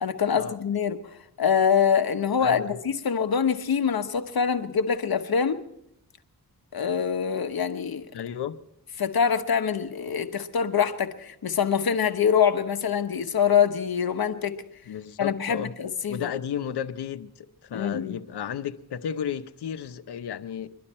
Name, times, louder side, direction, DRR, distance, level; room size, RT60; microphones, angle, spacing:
voice 1, 0.0-1.0 1.4-5.6 6.7-8.1 9.0-14.6 15.2-16.3 17.7-18.2, left 7 dB, 65° left, 1.1 m, -24 dB
voice 2, 2.4-2.8 8.1-8.6 14.9-15.7 16.1-20.7, left 8 dB, 85° left, 0.8 m, -33 dB
23.5 x 12.0 x 4.3 m
cardioid pair, 65°, 39 cm